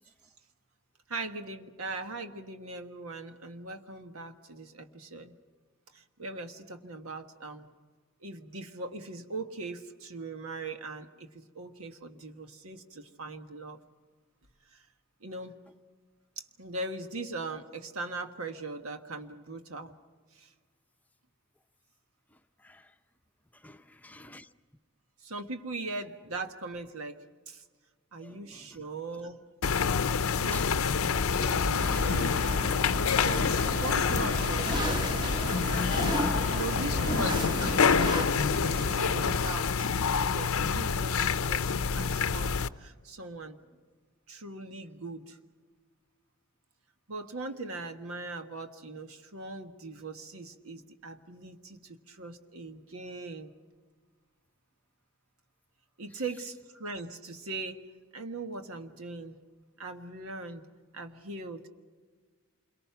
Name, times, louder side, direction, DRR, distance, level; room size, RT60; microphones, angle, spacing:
voice 1, 1.1-5.4 5.9-7.7 8.2-13.8 14.7-14.8 15.2-15.5 16.4-19.9 20.3-20.5 25.2-27.6 28.1-29.5 30.4-32.5 33.1-34.7 36.5-43.6 44.3-45.4 47.1-53.5 56.0-57.9 58.1-59.4 59.8-60.6 60.9-61.7, right 3 dB, 85° right, 6 dB, 1.5 m, -40 dB
voice 2, 22.6-22.9 23.5-24.5 28.2-28.9 30.5-30.7 31.8-32.1, left 2 dB, 5° left, 8 dB, 0.7 m, -49 dB
sound 1, 29.6-42.7, left 5 dB, 85° left, 0.6 m, -27 dB
sound 2, 31.7-39.4, right 1 dB, 55° right, 1.8 m, -40 dB
sound 3, 33.3-38.3, right 1 dB, 20° right, 1.4 m, -34 dB
28.0 x 23.0 x 5.9 m, 1.5 s
head